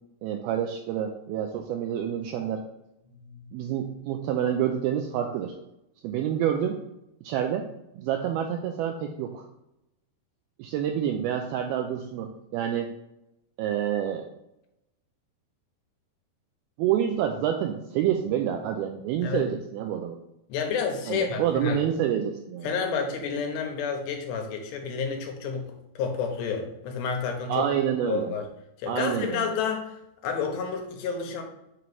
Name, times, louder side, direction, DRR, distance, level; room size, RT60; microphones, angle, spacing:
voice 1, 0.2-2.6 3.5-5.6 6.0-6.8 7.2-7.7 7.9-9.5 10.6-12.9 13.6-14.3 16.8-20.2 21.1-22.8 27.5-28.4 28.9-29.5, right 9 dB, 85° right, 4 dB, 2.2 m, -28 dB
voice 2, 20.5-21.8 22.6-25.7 26.0-27.7 28.1-28.5 28.8-29.9 30.2-31.4, left 6 dB, 80° left, 3 dB, 3.1 m, -30 dB
8.5 x 3.1 x 5.3 m, 0.86 s
omnidirectional pair, 4.9 m